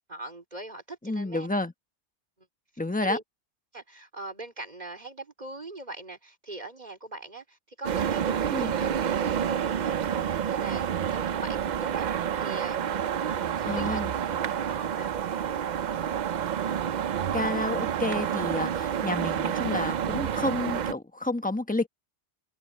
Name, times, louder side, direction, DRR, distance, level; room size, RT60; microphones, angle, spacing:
voice 1, 0.1-1.5 2.4-2.5 3.0-3.2 3.7-8.9 9.2-14.1 14.7-15.1, right 2 dB, 35° right, 4.0 m, -41 dB
voice 2, 1.0-1.7 2.8-3.2 8.5-8.7 13.6-14.1 17.3-21.9, left 2 dB, 10° left, 1.1 m, -30 dB
sound 1, 7.8-20.9, right 8 dB, 55° right, 0.5 m, -29 dB
omnidirectional pair, 1.2 m